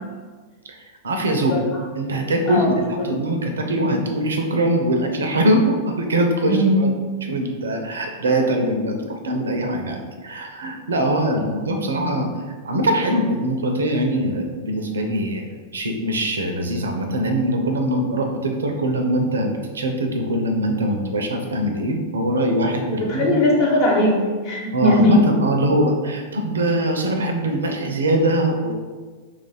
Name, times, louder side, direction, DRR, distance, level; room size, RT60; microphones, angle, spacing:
voice 1, 1.0-1.5 1.9-6.9 7.2-12.3 12.6-23.4 24.7-28.7, right 1 dB, 80° right, 4 dB, 0.5 m, -22 dB
voice 2, 22.9-25.2, left 1 dB, 50° left, -2 dB, 1.0 m, -19 dB
2.9 x 2.4 x 4.1 m, 1.5 s
figure-of-eight pair, 95°, 0 cm